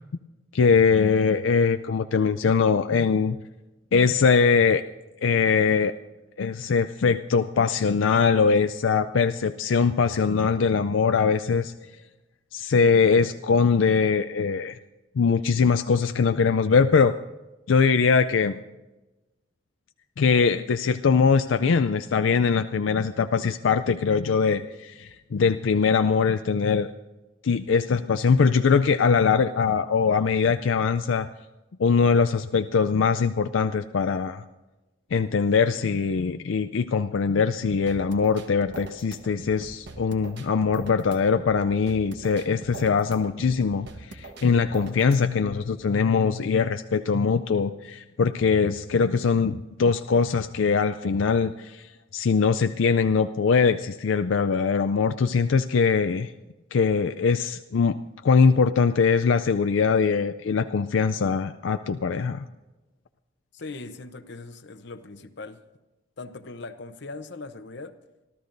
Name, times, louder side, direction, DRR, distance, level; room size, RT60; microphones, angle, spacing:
voice 1, 0.5-3.4 3.9-4.8 5.2-5.9 6.4-11.7 12.5-14.8 15.2-17.1 17.7-18.6 20.2-26.9 27.4-31.3 31.8-34.4 35.1-51.9 52.1-56.3 56.7-58.0 58.2-62.4, left 5 dB, 90° left, 9 dB, 0.4 m, -22 dB
sound 1, 37.9-45.6, right 2 dB, 65° right, 1.2 m, -42 dB
voice 2, 63.5-65.6 66.2-67.9, left 3 dB, 65° left, 11 dB, 0.8 m, -40 dB
27.5 x 13.0 x 2.6 m, 1.1 s
head